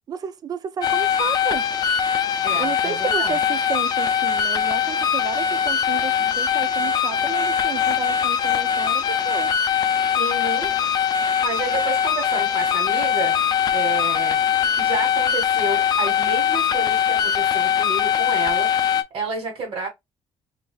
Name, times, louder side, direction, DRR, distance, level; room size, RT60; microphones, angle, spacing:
voice 1, 0.1-1.7 2.5-9.5, right 7 dB, 40° right, 0.4 m, -32 dB
sound 1, 0.8-19.0, left 8 dB, 40° left, 0.4 m, -21 dB
voice 2, 2.4-3.4 10.2-10.7 11.4-13.4 13.7-14.4 14.8-19.9, right 3 dB, 60° right, 1.6 m, -30 dB
3.9 x 2.7 x 2.3 m
cardioid pair, 145°, 10 cm